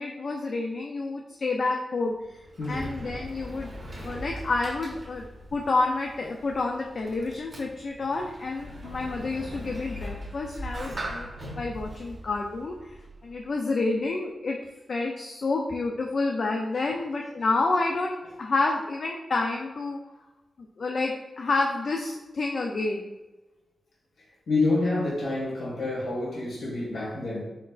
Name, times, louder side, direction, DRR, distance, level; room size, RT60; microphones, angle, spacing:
voice 1, 0.0-2.1 2.7-3.7 4.0-5.2 5.5-11.3 11.5-13.0 13.2-14.6 14.9-20.0 20.8-23.1, left 3 dB, 50° left, 1 dB, 0.4 m, -29 dB
Sliding door, 2.1-13.5, equal, 30° right, 0.8 m, -40 dB
voice 2, 2.6-2.9 24.5-27.4, left 2 dB, 85° left, -5 dB, 1.5 m, -28 dB
4.3 x 4.3 x 2.4 m, 1.1 s
wide cardioid pair, 175°, 0 cm